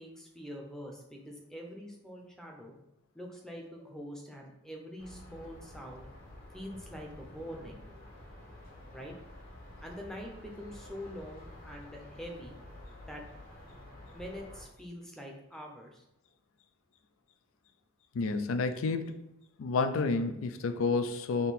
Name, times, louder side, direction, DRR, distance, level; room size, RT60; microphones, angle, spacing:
voice 1, 0.0-2.8 3.1-6.1 6.5-8.4 8.9-9.3 9.8-12.6 13.1-13.2 14.1-16.0, equal, 5° left, 1 dB, 0.5 m, -45 dB
sound 1, 5.0-14.6, left 1 dB, 45° left, 1.0 m, -50 dB
voice 2, 18.1-19.1 19.6-21.5, left 3 dB, 75° left, 8 dB, 0.4 m, -30 dB
3.7 x 2.7 x 4.1 m, 0.88 s
head